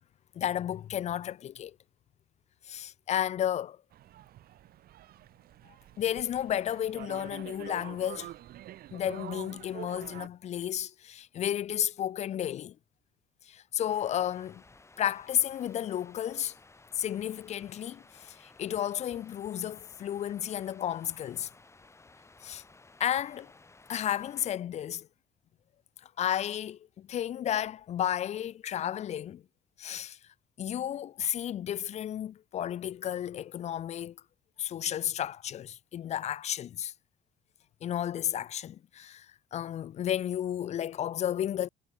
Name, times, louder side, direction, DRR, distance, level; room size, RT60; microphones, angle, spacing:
voice 1, 0.4-1.7 2.7-3.8 6.0-8.3 8.9-12.7 13.5-14.6 15.0-16.5 17.0-21.5 22.4-22.6 23.0-23.5 23.9-25.1 26.2-29.4 29.8-30.2 30.6-34.2 34.6-36.9 37.8-39.3 39.5-41.7, left 10 dB, 40° left, 0.4 m, -32 dB
sound 1, 3.9-10.3, right 13 dB, 65° right, 1.2 m, -46 dB
sound 2, 13.9-24.5, left 3 dB, 15° left, 2.3 m, -57 dB
cardioid pair, 110°, 17 cm